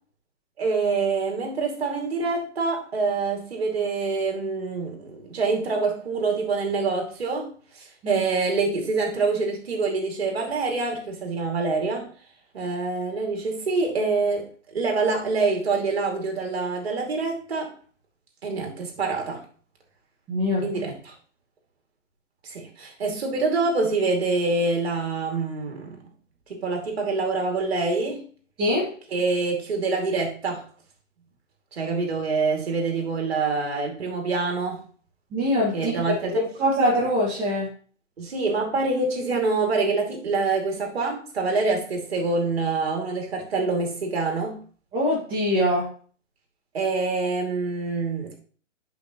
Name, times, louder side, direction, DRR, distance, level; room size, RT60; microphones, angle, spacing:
voice 1, 0.6-12.1 12.5-14.5 14.7-17.7 18.4-19.4 20.6-20.9 22.4-26.0 26.5-28.2 29.1-30.6 31.7-34.8 35.7-36.4 38.2-44.6 46.7-48.3, right 3 dB, 55° right, 1 dB, 2.6 m, -26 dB
voice 2, 20.3-20.7 28.6-28.9 35.3-35.9 36.3-37.7 44.9-45.9, equal, 15° right, -7 dB, 1.9 m, -23 dB
10.0 x 5.5 x 3.0 m, 0.43 s
figure-of-eight pair, 130°, 37 cm